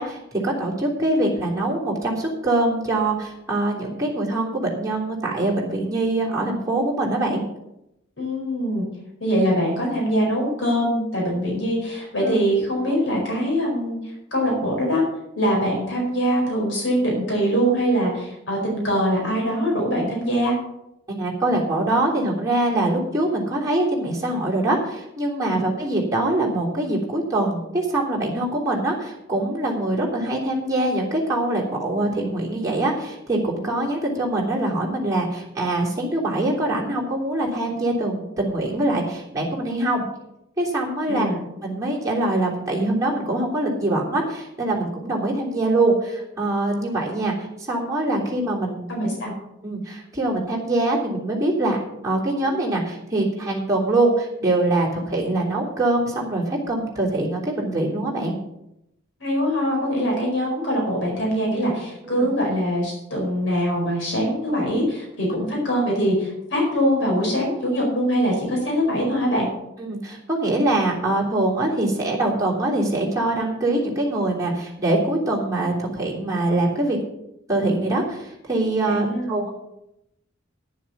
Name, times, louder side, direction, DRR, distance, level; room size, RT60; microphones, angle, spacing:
voice 1, 0.0-7.4 12.2-12.4 21.1-40.0 40.6-41.3 41.6-48.9 49.6-58.3 69.8-77.0 77.5-79.5, right 2 dB, 15° right, -5 dB, 3.2 m, -23 dB
voice 2, 8.2-8.8 9.2-14.0 14.3-15.0 15.4-20.5 25.5-25.6 41.1-41.4 48.9-49.3 59.2-69.5 78.9-79.4, equal, 70° left, -2 dB, 4.6 m, -23 dB
10.5 x 7.1 x 7.2 m, 0.85 s
head